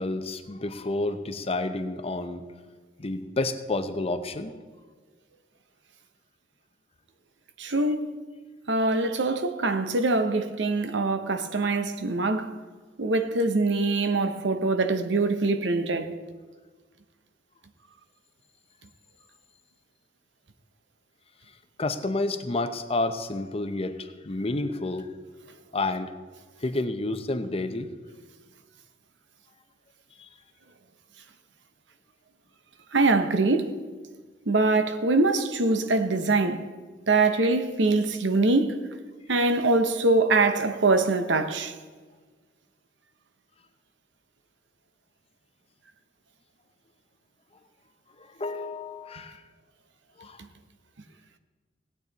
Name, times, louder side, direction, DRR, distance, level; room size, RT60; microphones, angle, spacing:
voice 1, 0.0-2.4 3.0-4.5 21.8-25.1 25.7-26.1 26.6-27.9 48.2-49.4 50.2-50.4, left 2 dB, 30° left, 0.7 m, -30 dB
voice 2, 7.6-8.0 8.7-12.5 13.0-16.1 32.9-33.7 34.5-36.7 37.1-38.8 39.3-41.7, right 3 dB, 70° right, 0.9 m, -23 dB
17.5 x 8.8 x 4.0 m
head